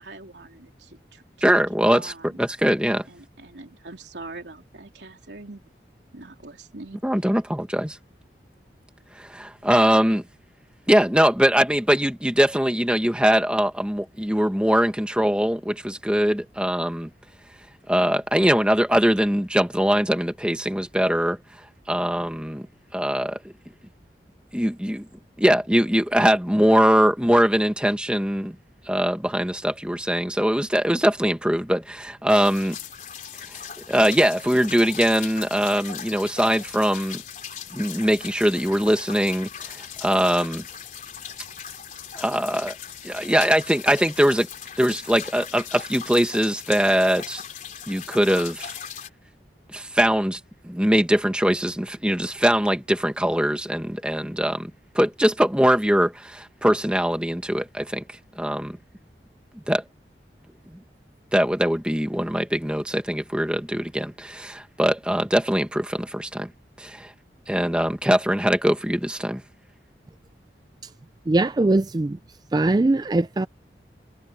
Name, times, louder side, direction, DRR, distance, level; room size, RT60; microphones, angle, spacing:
voice 1, 0.0-1.6 1.9-2.4 3.1-5.6 6.1-7.0, right 2 dB, 90° right, 3.4 m, -43 dB
voice 2, 1.4-2.1 2.4-3.0 7.0-8.0 9.1-10.2 10.9-17.1 17.9-21.4 21.9-22.6 22.9-23.4 24.5-25.0 25.4-28.5 28.9-32.8 33.5-33.6 33.9-37.2 37.7-40.6 42.1-42.7 43.0-44.5 44.8-47.4 47.9-48.7 49.7-54.7 54.9-58.0 58.4-58.8 59.7-59.8 61.3-66.5 66.8-67.1 67.5-69.4, equal, 5° right, 1.6 m, -22 dB
sound 1, 32.3-49.1, left 8 dB, 45° left, 3.7 m, -39 dB
voice 3, 71.3-72.2 72.5-73.5, right 2 dB, 25° right, 0.4 m, -21 dB
head